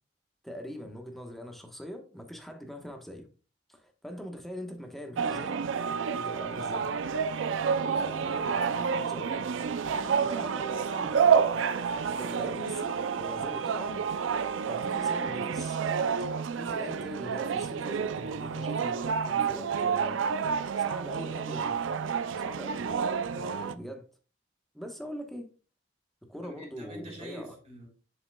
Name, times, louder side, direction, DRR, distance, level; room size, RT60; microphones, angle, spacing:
voice 1, 0.4-3.3 3.7-5.6 6.1-6.9 7.9-9.4 10.2-10.8 12.2-14.0 14.6-15.8 16.5-20.2 20.8-21.8 22.4-22.9 23.3-24.0 24.7-25.5 26.2-27.6, equal, ahead, 1.1 m, -42 dB
sound 1, 5.2-23.7, right 6 dB, 85° right, 0.4 m, -29 dB
voice 2, 7.7-9.2 9.9-11.4 26.4-27.9, right 1 dB, 35° right, 3.7 m, -46 dB
7.6 x 6.7 x 2.2 m
head